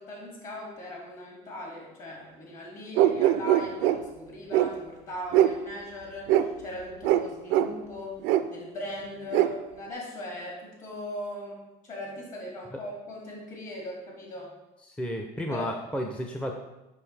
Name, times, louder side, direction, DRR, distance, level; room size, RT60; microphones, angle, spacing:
voice 1, 0.0-14.5 15.5-15.7, left 1 dB, 45° left, -2 dB, 2.2 m, -39 dB
sound 1, 3.0-4.0 4.5-4.7 5.3-5.5 6.3-6.4 7.0-7.2 7.5-7.7 8.2-8.4 9.3-9.5, right 12 dB, 80° right, 0.4 m, -21 dB
voice 2, 14.8-16.6, equal, 5° left, 3 dB, 0.5 m, -32 dB
6.9 x 5.3 x 3.3 m, 1.0 s
cardioid pair, 110°, 19 cm